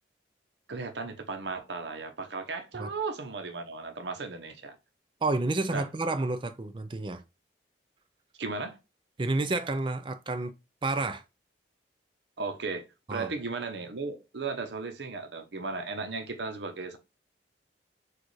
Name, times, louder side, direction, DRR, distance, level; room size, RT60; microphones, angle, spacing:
voice 1, 0.7-4.8 5.7-5.8 8.4-8.8 12.4-12.8 13.1-17.0, right 4 dB, 75° right, 0.7 m, -35 dB
voice 2, 5.2-7.2 9.2-10.5 10.8-11.2 13.1-13.3, right 2 dB, 30° right, 0.4 m, -30 dB
6.3 x 2.4 x 3.2 m
head